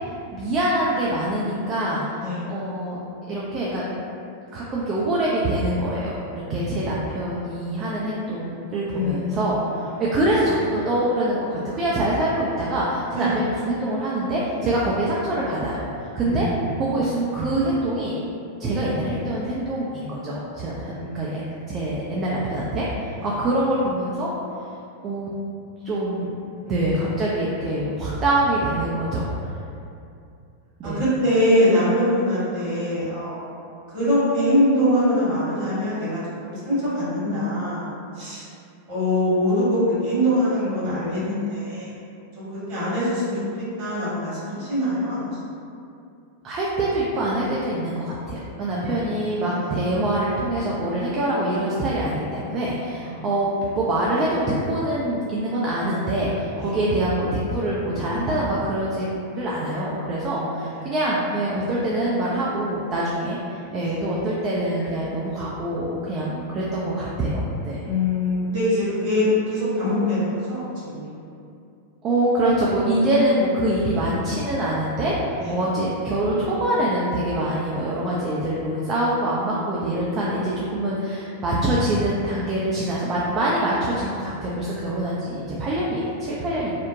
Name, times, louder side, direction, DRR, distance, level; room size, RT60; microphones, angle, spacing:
voice 1, 0.3-2.0 2.5-3.0 3.3-3.9 4.5-16.5 16.8-18.1 18.6-21.4 21.7-24.3 25.0-25.3 25.8-26.3 26.7-29.5 30.8-31.0 46.4-53.5 53.7-59.1 59.4-67.9 72.0-86.7, right 1 dB, 30° right, -6 dB, 0.3 m, -24 dB
voice 2, 8.9-10.0 13.1-13.3 16.2-16.9 20.9-21.5 23.2-23.3 26.6-26.8 30.8-33.4 33.9-37.9 38.1-38.4 38.9-41.9 42.3-43.4 43.8-45.3 48.7-49.7 53.0-53.2 56.6-56.8 60.3-60.9 63.8-64.1 66.2-66.6 67.8-71.2 75.4-75.6, left 1 dB, 50° right, -11 dB, 1.4 m, -24 dB
2.8 x 2.0 x 2.6 m, 2.5 s
figure-of-eight pair, 90°, 0 cm